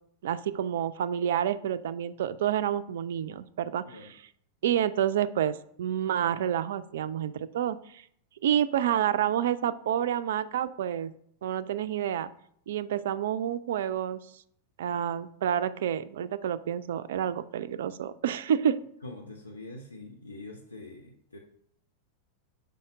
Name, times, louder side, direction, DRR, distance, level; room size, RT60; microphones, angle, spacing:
voice 1, 0.2-3.8 4.6-8.0 8.4-11.1 11.4-12.3 12.7-14.2 14.8-18.8, right 10 dB, 60° right, 14 dB, 0.4 m, -29 dB
voice 2, 19.0-21.4, left 2 dB, 80° left, 2 dB, 0.7 m, -44 dB
5.6 x 5.2 x 5.0 m, 0.66 s
figure-of-eight pair, 90°, 0 cm